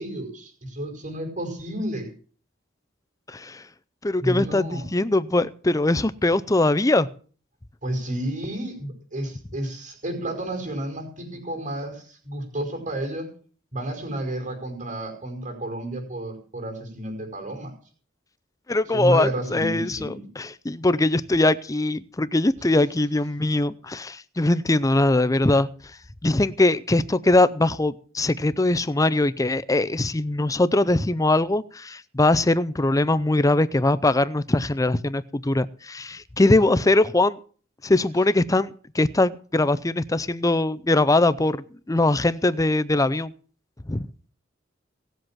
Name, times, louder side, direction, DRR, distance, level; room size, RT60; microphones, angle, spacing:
voice 1, 0.0-2.1 4.2-4.8 7.8-13.3 13.7-17.7 18.9-20.2, right 1 dB, 40° right, 5.1 m, -31 dB
voice 2, 3.3-3.6 4.0-7.1 18.7-25.7 26.2-37.4 37.8-43.3 43.9-44.1, left 2 dB, 15° left, 0.6 m, -21 dB
18.0 x 8.0 x 7.4 m
head